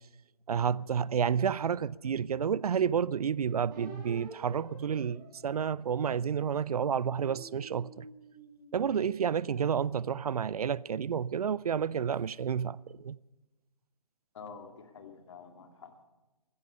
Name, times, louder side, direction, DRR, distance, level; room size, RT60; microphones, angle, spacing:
voice 1, 0.5-8.1 8.7-13.2, right 7 dB, 75° right, 0.4 m, -30 dB
sound 1, 3.7-6.4 7.0-9.5, right 2 dB, 30° right, 6.3 m, -50 dB
voice 2, 14.3-16.0, left 5 dB, 50° left, 2.1 m, -48 dB
15.0 x 15.0 x 5.5 m
hypercardioid pair, 150°, 20 cm